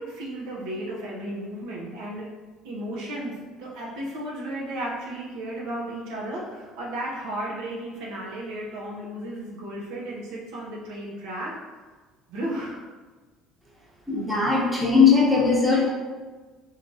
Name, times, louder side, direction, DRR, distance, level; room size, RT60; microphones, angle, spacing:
voice 1, 0.0-2.3 2.6-3.3 3.6-11.5 12.3-12.8, right 1 dB, 75° right, -4 dB, 0.8 m, -34 dB
voice 2, 14.1-15.9, left 5 dB, 5° right, -6 dB, 1.0 m, -19 dB
3.2 x 2.5 x 2.7 m, 1.3 s
supercardioid pair, 80°, 0 cm